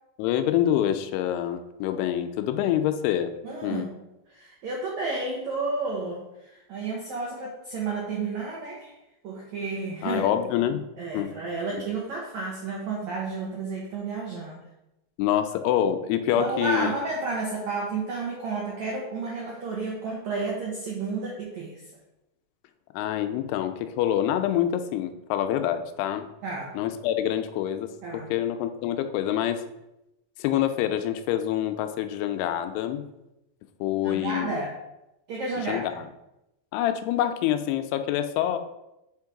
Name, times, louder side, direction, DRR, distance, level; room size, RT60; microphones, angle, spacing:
voice 1, 0.2-3.9 10.0-10.9 11.1-11.4 15.2-16.9 22.9-26.3 26.7-29.6 30.4-33.1 33.8-34.6 35.7-36.0 36.7-38.6, left 11 dB, 85° left, 8 dB, 2.6 m, -26 dB
voice 2, 3.4-4.0 4.3-8.9 9.2-10.3 11.0-14.6 16.4-21.8 26.4-26.7 28.0-28.3 34.0-34.7 35.3-35.8, right 3 dB, 85° right, -3 dB, 1.6 m, -31 dB
5.6 x 4.5 x 4.7 m, 0.90 s
omnidirectional pair, 4.7 m